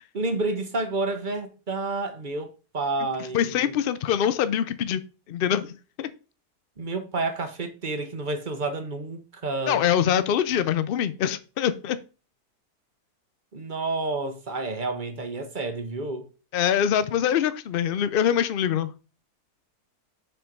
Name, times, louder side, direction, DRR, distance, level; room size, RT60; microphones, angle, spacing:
voice 1, 0.1-3.7 6.8-9.8 13.5-16.3, right 3 dB, 35° right, 1.0 m, -30 dB
voice 2, 3.3-5.0 5.3-6.1 9.7-12.0 16.5-18.9, left 9 dB, 85° left, 0.5 m, -24 dB
6.2 x 4.6 x 5.2 m
omnidirectional pair, 1.6 m